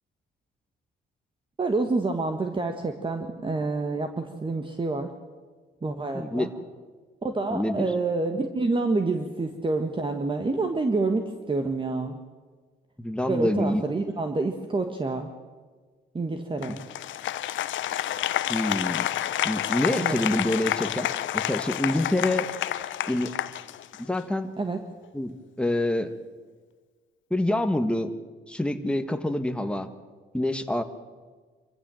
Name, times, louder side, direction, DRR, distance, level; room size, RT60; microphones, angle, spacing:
voice 1, 1.6-5.1 5.8-6.5 7.2-12.2 13.3-15.3 16.1-16.8 19.9-20.2 24.6-24.8, right 3 dB, 25° right, 5 dB, 1.5 m, -28 dB
voice 2, 6.1-6.5 7.5-7.9 13.0-13.8 16.7-16.8 18.5-19.1 19.4-21.1 21.3-22.5 23.1-23.3 24.0-24.5 25.1-26.1 27.3-28.1 28.5-29.9 30.3-30.8, left 1 dB, 5° left, 7 dB, 1.5 m, -26 dB
Applause, 16.6-24.2, left 12 dB, 75° left, 0.8 m, -29 dB
25.0 x 14.5 x 7.7 m, 1.4 s
cardioid pair, 90°, 20 cm